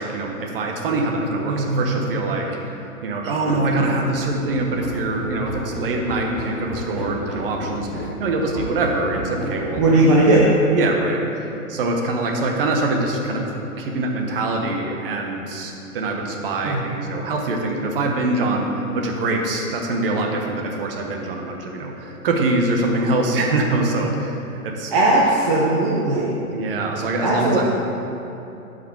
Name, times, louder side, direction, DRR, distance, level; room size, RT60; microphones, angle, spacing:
voice 1, 0.0-2.6 3.0-10.1 10.7-13.5 13.8-24.4 24.6-24.9 26.5-27.7, right 2 dB, 40° right, 2 dB, 1.0 m, -24 dB
voice 2, 1.5-2.0 9.8-10.5 16.6-16.8 24.9-26.4 27.2-27.7, right 2 dB, 20° right, -4 dB, 0.5 m, -18 dB
Run, 3.5-10.1, equal, ahead, 2.0 m, -31 dB
9.8 x 5.1 x 4.5 m, 2.9 s
hypercardioid pair, 140°, 44 cm